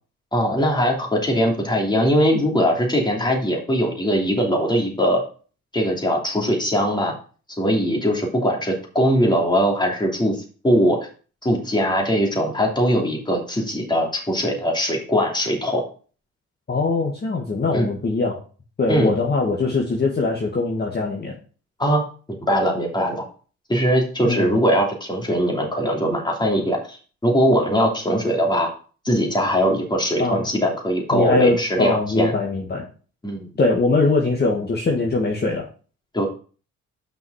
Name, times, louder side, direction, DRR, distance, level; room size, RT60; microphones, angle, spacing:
voice 1, 0.3-5.2 5.7-7.1 7.6-11.0 11.4-15.8 17.7-17.9 18.9-19.1 21.8-22.0 22.5-23.2 23.7-28.7 29.0-32.3 33.2-33.5 36.1-36.3, equal, 15° left, 0 dB, 2.9 m, -21 dB
voice 2, 16.7-18.4 18.8-21.3 24.2-24.6 30.2-30.5 31.1-32.9 33.6-35.7, left 3 dB, 35° left, -1 dB, 1.8 m, -22 dB
6.2 x 5.5 x 6.4 m, 0.39 s
cardioid pair, 90°, 30 cm